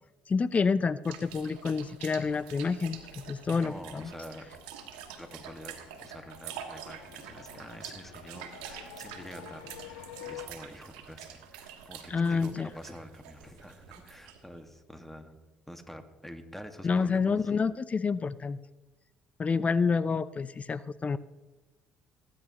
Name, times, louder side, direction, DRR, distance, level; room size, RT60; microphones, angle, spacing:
voice 1, 0.3-4.1 12.1-12.7 16.8-18.6 19.4-21.2, left 5 dB, 35° left, 17 dB, 0.5 m, -28 dB
sound 1, 1.0-14.6, right 9 dB, 85° right, 1.4 m, -46 dB
sound 2, 2.2-10.5, left 11 dB, 85° left, 1.0 m, -50 dB
voice 2, 3.6-4.5 5.2-15.4 15.7-17.5, equal, 5° left, 6 dB, 1.8 m, -47 dB
19.0 x 10.0 x 3.0 m, 1.1 s
hypercardioid pair, 60°, 4 cm